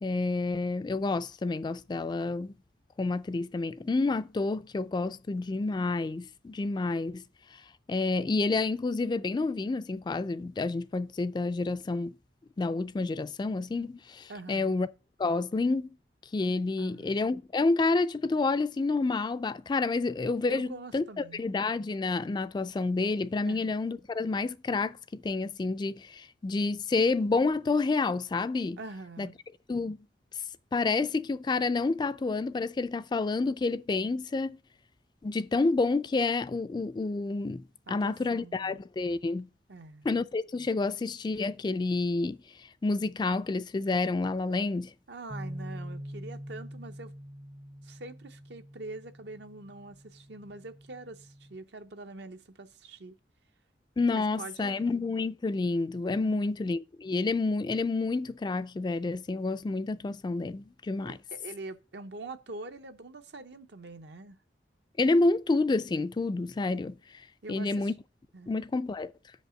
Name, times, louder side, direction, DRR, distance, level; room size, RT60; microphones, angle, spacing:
voice 1, 0.0-2.5 3.0-7.2 7.5-7.6 7.9-12.2 12.6-14.9 15.2-15.9 16.3-28.8 29.2-29.3 29.7-30.0 30.7-34.6 35.2-39.5 40.0-44.9 54.0-61.2 65.0-67.9 68.5-69.1, left 3 dB, 25° left, 0.3 m, -29 dB
voice 2, 14.3-14.8 16.8-17.1 20.5-21.4 23.5-23.7 28.8-29.4 37.9-38.8 39.7-40.1 45.1-47.1 47.8-53.2 54.1-54.8 56.2-56.4 61.3-64.4 67.4-67.9 68.3-68.5, right 2 dB, 70° right, 0.8 m, -44 dB
sound 1, 45.3-51.6, equal, 30° right, 0.6 m, -44 dB
6.4 x 5.4 x 6.2 m
head